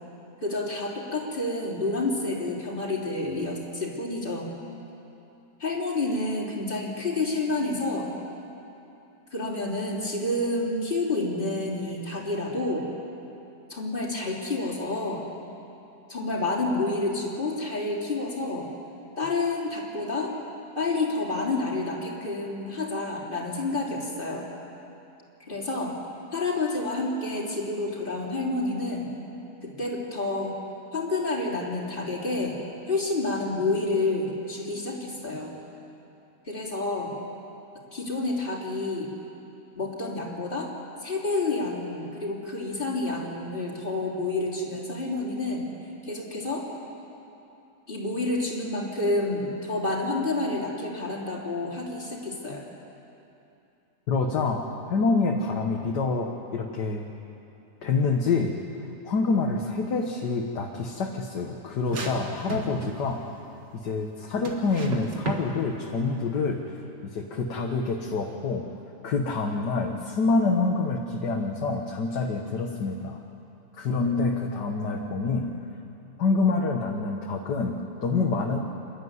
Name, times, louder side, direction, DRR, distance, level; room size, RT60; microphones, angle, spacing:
voice 1, 0.4-4.5 5.6-8.1 9.3-12.9 13.7-15.2 16.1-18.7 19.2-20.3 20.8-24.5 25.5-25.9 26.3-29.1 29.6-30.5 30.9-32.6 32.9-35.5 36.5-37.1 37.9-39.1 39.8-40.7 41.0-45.6 46.0-46.6 47.9-52.7, left 2 dB, 30° left, -3 dB, 3.5 m, -29 dB
voice 2, 54.1-57.1 57.8-63.2 63.7-68.7 69.0-73.2 73.8-75.5 76.2-78.6, left 4 dB, 90° left, 1 dB, 1.9 m, -27 dB
sound 1, 61.9-63.1 64.5-65.5, right 4 dB, 75° right, 2.4 m, -33 dB
27.5 x 12.5 x 9.6 m, 2.9 s
omnidirectional pair, 1.8 m